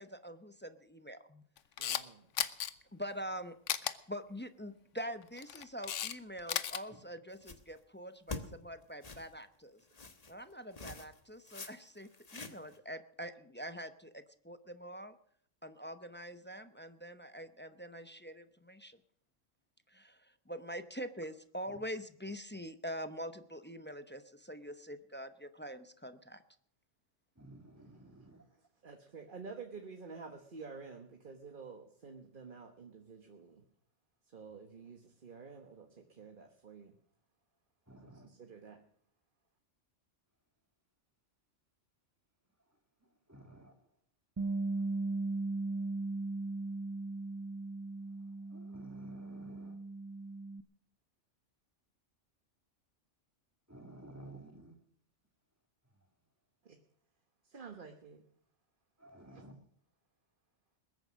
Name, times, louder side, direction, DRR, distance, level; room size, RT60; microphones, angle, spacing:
voice 1, 0.0-1.4 2.9-3.6 3.8-9.8 10.3-15.1 15.6-19.0 19.9-26.4, equal, 10° left, 10 dB, 0.6 m, -45 dB
Camera, 1.6-2.0 2.4-2.7 3.7-3.9 5.2-6.1 6.4-6.8, left 10 dB, 85° left, 1.1 m, -34 dB
voice 2, 1.8-2.3 27.8-28.1 28.8-33.6 34.3-36.9 38.2-38.8 56.6-56.8 57.4-58.2 59.2-59.4, right 5 dB, 45° right, 5 dB, 1.3 m, -50 dB
sound 1, 7.3-7.8 8.3-8.4 9.0-9.3 9.9-10.3 10.7-11.2 11.5-11.7 12.0-12.8, left 3 dB, 35° left, 1.3 m, -45 dB
voice 3, 27.4-28.4 37.9-38.3 43.3-43.8 44.8-44.9 48.5-49.8 53.7-54.7 59.0-59.5, right 1 dB, 15° right, 3 dB, 2.4 m, -53 dB
Bass guitar, 44.4-50.6, right 3 dB, 30° right, 0.4 m, -38 dB
21.0 x 9.1 x 6.3 m, 0.66 s
omnidirectional pair, 1.2 m